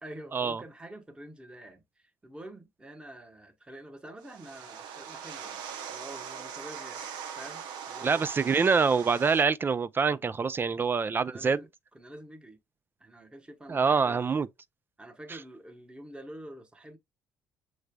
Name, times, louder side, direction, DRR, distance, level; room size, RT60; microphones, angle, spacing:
voice 1, 0.0-5.6 5.9-7.0 7.4-8.3 10.0-10.2 10.8-10.9 11.2-12.6 13.0-14.2 15.0-17.0, right 1 dB, 15° right, 1.1 m, -47 dB
sound 1, 4.2-9.4, right 8 dB, 80° right, 0.8 m, -41 dB
voice 2, 8.0-11.6 13.7-14.5, right 5 dB, 30° right, 0.4 m, -25 dB
6.6 x 3.1 x 2.2 m
supercardioid pair, 70°, 7 cm